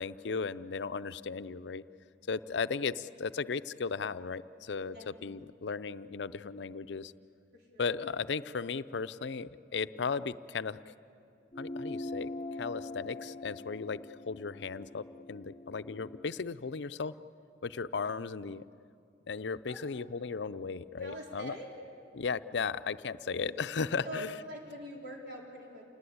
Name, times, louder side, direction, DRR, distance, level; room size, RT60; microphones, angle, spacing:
voice 1, 0.0-1.8 2.3-7.1 7.8-10.8 11.6-12.3 12.6-14.0 14.3-15.0 15.3-17.1 17.6-18.6 19.3-21.6 22.1-24.3, left 5 dB, 80° left, 13 dB, 0.5 m, -36 dB
voice 2, 7.5-7.8 19.7-19.9 21.0-21.7 24.0-25.8, equal, 65° right, -1 dB, 4.1 m, -44 dB
sound 1, 11.5-16.3, left 2 dB, 20° left, 0.6 m, -43 dB
28.0 x 19.5 x 8.6 m, 2.5 s
head